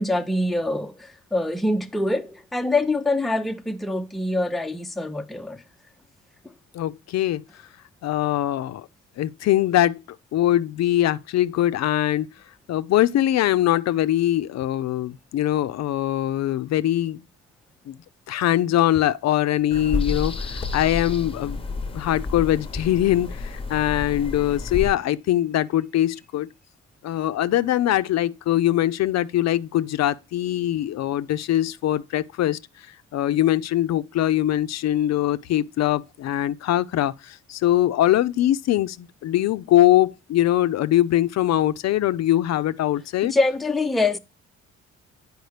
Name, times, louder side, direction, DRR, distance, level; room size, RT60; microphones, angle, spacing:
voice 1, 0.0-5.6 43.2-44.2, left 2 dB, ahead, 0.5 m, -24 dB
voice 2, 6.7-7.4 8.0-8.9 9.2-10.0 10.3-12.3 12.7-17.2 17.9-18.0 18.3-26.5 27.0-43.3, left 13 dB, 60° left, 0.4 m, -22 dB
sound 1, 19.7-24.9, left 3 dB, 20° left, 0.8 m, -30 dB
9.2 x 4.7 x 3.2 m
cardioid pair, 90°, 30 cm